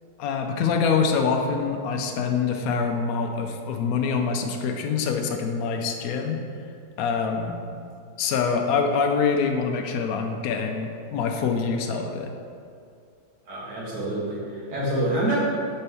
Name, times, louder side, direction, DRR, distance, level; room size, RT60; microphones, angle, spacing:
voice 1, 0.2-6.4 7.0-7.6 8.2-12.3, left 5 dB, 70° left, 4 dB, 0.8 m, -25 dB
voice 2, 13.5-15.4, right 1 dB, 55° right, -7 dB, 2.0 m, -27 dB
4.5 x 4.5 x 5.5 m, 2.3 s
omnidirectional pair, 2.1 m